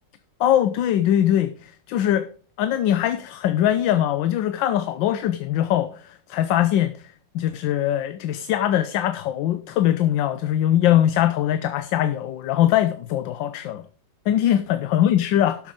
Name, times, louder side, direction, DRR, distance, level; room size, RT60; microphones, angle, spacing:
voice 1, 0.4-2.3 2.6-7.0 7.3-13.8 14.3-15.7, left 11 dB, 80° left, 1.4 m, -21 dB
12.0 x 6.5 x 5.1 m
omnidirectional pair, 2.0 m